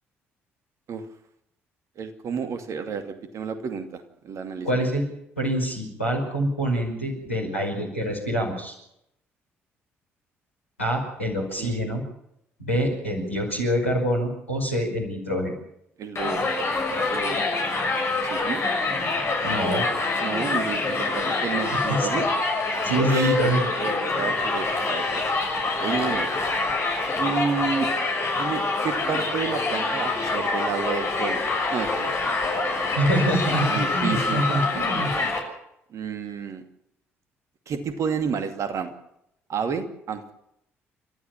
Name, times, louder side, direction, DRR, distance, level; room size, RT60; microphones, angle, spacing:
voice 1, 2.0-4.9 11.6-11.8 16.0-16.4 17.1-17.4 18.2-18.6 20.2-22.3 23.0-23.4 23.8-25.2 25.8-26.3 27.2-27.9 28.3-31.4 31.7-32.5 33.6-34.4 35.1-35.3 35.9-36.6 37.7-38.9 39.5-40.3, right 6 dB, 50° right, 8 dB, 2.5 m, -31 dB
voice 2, 4.6-5.1 5.4-8.7 10.8-12.0 12.6-15.5 19.4-19.9 21.7-22.3 22.8-23.7 33.0-35.1, right 1 dB, 90° left, -1 dB, 5.4 m, -25 dB
Crowd, 16.2-35.4, left 3 dB, 40° left, 6.5 m, -26 dB
29.5 x 13.5 x 7.3 m, 0.78 s
figure-of-eight pair, 45°, 7 cm